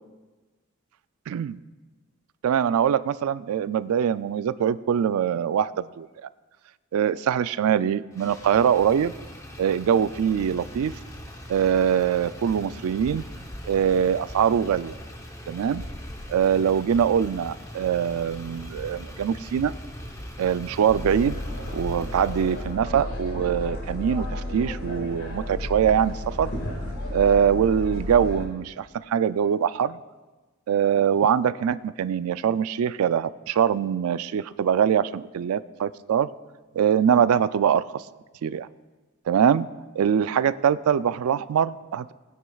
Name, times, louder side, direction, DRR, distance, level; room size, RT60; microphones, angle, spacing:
voice 1, 1.3-1.6 2.4-6.3 6.9-9.1 9.6-10.9 11.5-13.2 13.7-14.9 15.5-15.8 16.3-19.7 20.4-21.4 21.7-26.5 27.1-30.0 30.7-36.3 36.7-38.0 38.4-38.7 39.3-39.7 39.9-42.1, right 8 dB, 75° right, 16 dB, 0.3 m, -23 dB
Motor vehicle (road), 8.1-22.7, equal, 15° left, 0.8 m, -41 dB
sound 1, 20.9-28.5, left 1 dB, 80° left, 2.0 m, -32 dB
19.5 x 9.3 x 2.3 m, 1.2 s
head